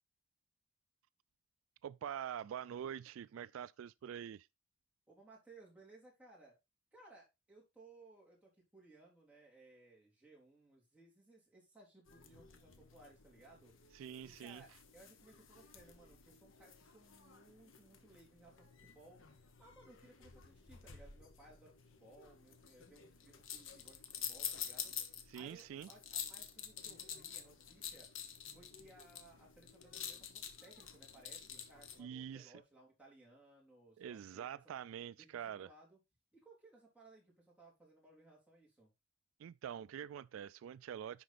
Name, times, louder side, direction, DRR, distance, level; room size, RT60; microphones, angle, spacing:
voice 1, 1.8-4.5 13.9-14.6 25.3-25.9 32.0-32.5 34.0-35.7 39.4-41.2, right 9 dB, 85° right, 0.3 m, -45 dB
voice 2, 5.1-6.5 6.9-13.7 14.2-28.1 28.5-34.5 35.2-35.3 35.6-36.0 36.3-38.9, right 2 dB, 5° right, 3.4 m, -62 dB
sound 1, 12.1-32.0, left 8 dB, 80° left, 1.3 m, -49 dB
10.5 x 4.2 x 4.1 m
head